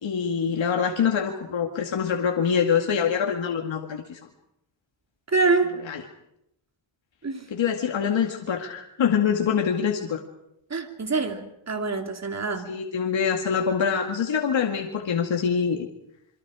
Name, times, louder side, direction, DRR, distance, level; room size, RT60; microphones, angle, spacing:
voice 1, 0.0-4.2 5.8-6.0 7.5-10.2 12.6-15.9, left 7 dB, 65° left, 2 dB, 2.2 m, -25 dB
voice 2, 5.3-5.7 7.2-7.4 10.7-12.7, right 3 dB, 30° right, 5 dB, 2.8 m, -25 dB
28.0 x 23.5 x 5.0 m, 0.79 s
wide cardioid pair, 100°, 49 cm